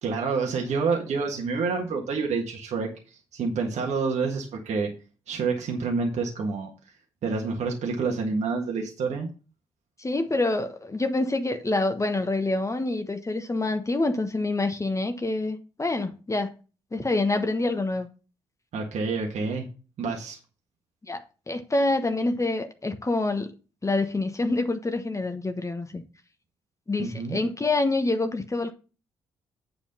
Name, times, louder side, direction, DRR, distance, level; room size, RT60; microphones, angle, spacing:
voice 1, 0.0-4.9 5.3-6.7 7.2-9.3 18.7-19.7 20.0-20.4 27.0-27.4, right 4 dB, 60° right, 1.7 m, -28 dB
voice 2, 10.0-16.5 16.9-18.1 21.1-23.5 23.8-26.0 26.9-28.7, left 2 dB, 25° left, 1.2 m, -26 dB
8.6 x 4.9 x 5.4 m
hypercardioid pair, 40°, 13 cm